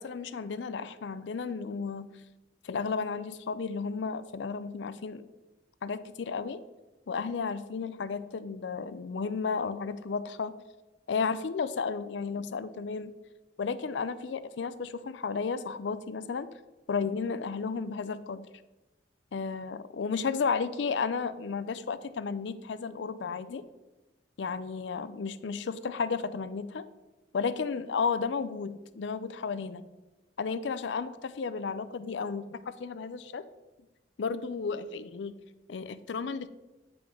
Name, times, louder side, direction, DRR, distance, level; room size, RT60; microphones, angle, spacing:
voice 1, 0.0-2.1 2.6-5.2 5.8-6.6 7.1-10.6 11.1-13.1 13.6-16.5 16.9-18.5 19.3-23.6 24.4-26.8 27.3-29.8 30.4-33.5 34.2-35.3 35.7-36.5, left 5 dB, 90° left, 13 dB, 0.5 m, -33 dB
9.4 x 3.8 x 6.0 m, 1.1 s
head